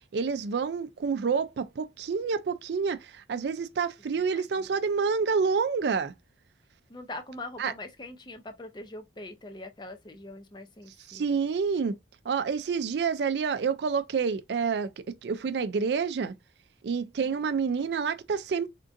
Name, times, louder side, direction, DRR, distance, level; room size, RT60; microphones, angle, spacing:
voice 1, 0.1-6.1 7.6-7.7 11.1-11.9 12.3-14.9 15.2-16.3 16.8-18.7, right 5 dB, 70° right, 0.4 m, -28 dB
voice 2, 4.1-4.7 6.9-11.3 17.2-17.4, left 2 dB, 25° left, 0.5 m, -43 dB
3.6 x 2.5 x 2.5 m
head